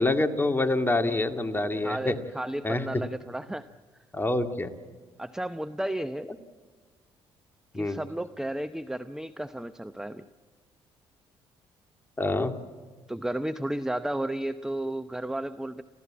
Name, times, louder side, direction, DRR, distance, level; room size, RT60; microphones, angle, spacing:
voice 1, 0.0-2.2 2.6-3.0 4.1-4.7 7.7-8.0 12.2-12.5, left 2 dB, 20° left, 6 dB, 2.2 m, -26 dB
voice 2, 1.8-3.7 5.2-6.3 7.7-10.2 13.1-15.8, right 1 dB, 5° right, 12 dB, 0.8 m, -33 dB
27.0 x 15.5 x 8.7 m, 1.5 s
supercardioid pair, 60°, 12 cm